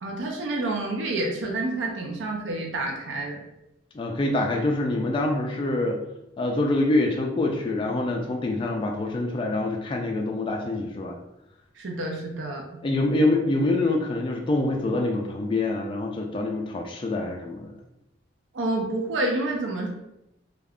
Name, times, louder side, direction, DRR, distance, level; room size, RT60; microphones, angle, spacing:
voice 1, 0.0-3.4 11.8-12.6 18.5-19.9, right 2 dB, 80° right, 0 dB, 0.5 m, -28 dB
voice 2, 3.9-6.0 6.4-11.2 12.8-17.7, left 2 dB, 25° left, 1 dB, 0.3 m, -25 dB
2.3 x 2.3 x 3.4 m, 0.85 s
head